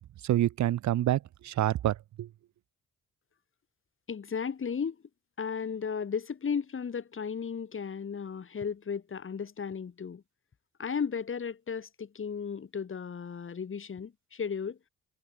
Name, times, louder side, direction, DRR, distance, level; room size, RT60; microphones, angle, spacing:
voice 1, 0.2-2.3, right 13 dB, 70° right, 1.1 m, -27 dB
voice 2, 4.1-5.0 5.4-10.2 10.8-14.8, left 6 dB, 45° left, 5.7 m, -35 dB
cardioid pair, 90°, 30 cm